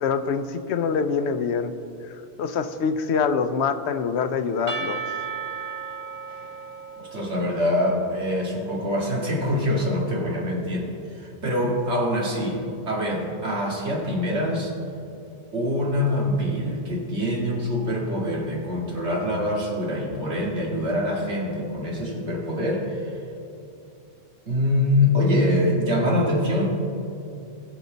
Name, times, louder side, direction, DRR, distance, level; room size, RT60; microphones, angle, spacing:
voice 1, 0.0-1.7 2.4-5.0, left 6 dB, 80° left, 10 dB, 0.9 m, -25 dB
Percussion / Church bell, 4.7-8.5, right 6 dB, 60° right, 0.9 m, -35 dB
voice 2, 7.1-14.7 15.5-23.2 24.5-26.7, left 1 dB, 90° right, -2 dB, 2.5 m, -24 dB
21.0 x 7.2 x 4.0 m, 2.7 s
omnidirectional pair, 1.1 m